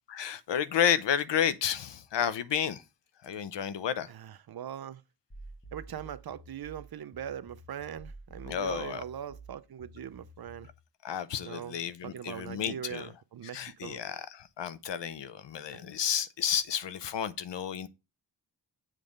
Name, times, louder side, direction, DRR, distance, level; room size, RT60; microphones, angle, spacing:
voice 1, 0.1-2.8 3.2-4.1 8.4-9.0 11.0-13.1 13.5-17.9, left 9 dB, 75° left, 0.7 m, -31 dB
voice 2, 4.1-5.0 5.7-10.7 11.4-14.0 15.7-15.9, right 9 dB, 60° right, 0.6 m, -41 dB
sound 1, 5.3-10.8, right 2 dB, 10° left, 1.2 m, -50 dB
7.5 x 3.2 x 5.1 m
wide cardioid pair, 105°, 43 cm